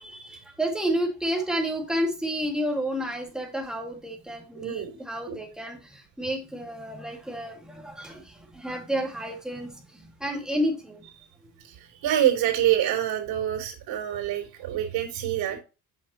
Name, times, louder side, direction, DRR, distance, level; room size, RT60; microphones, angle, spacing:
voice 1, 0.0-11.1 11.4-11.5 15.5-15.6, equal, ahead, 0 dB, 2.0 m, -31 dB
voice 2, 4.5-5.0 5.3-5.4 11.6-15.6, right 11 dB, 85° right, -6 dB, 3.2 m, -26 dB
8.0 x 5.9 x 3.0 m, 0.30 s
cardioid pair, 135°, 35 cm